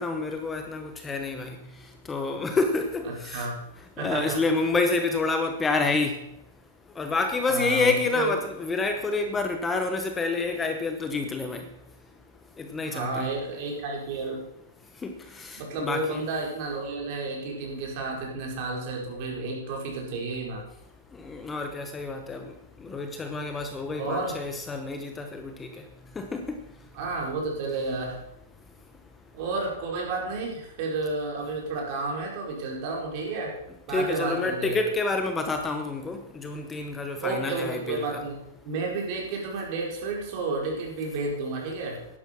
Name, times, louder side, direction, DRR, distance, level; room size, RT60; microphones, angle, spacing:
voice 1, 0.0-1.6 2.1-3.5 4.0-6.2 7.0-11.6 12.6-13.3 15.0-16.2 21.2-22.5 22.8-25.7 26.2-26.6 33.9-38.0, left 3 dB, 10° left, 6 dB, 0.9 m, -28 dB
voice 2, 3.0-3.6 4.0-4.4 7.5-8.3 12.8-14.4 15.5-20.6 24.0-24.4 26.9-28.2 29.3-33.6 33.9-34.8 37.2-38.4 38.6-42.0, right 3 dB, 45° right, -1 dB, 5.0 m, -31 dB
11.5 x 11.0 x 5.9 m, 0.84 s
hypercardioid pair, 155°, 0 cm